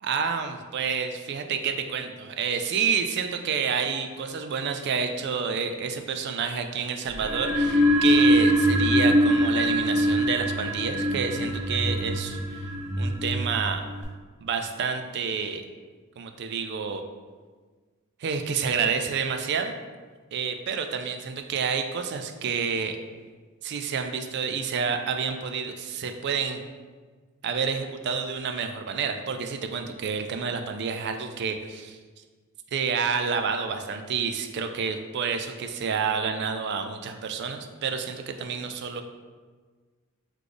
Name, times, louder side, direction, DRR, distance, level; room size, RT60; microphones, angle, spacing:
voice 1, 0.0-12.7 13.0-13.8 14.4-15.6 16.2-17.0 18.2-19.8 20.3-23.0 23.6-26.6 27.4-32.0 32.7-39.0, right 6 dB, 50° right, 6 dB, 0.4 m, -29 dB
sound 1, 7.1-14.0, equal, 5° right, 0.7 m, -23 dB
4.0 x 3.2 x 3.3 m, 1.4 s
head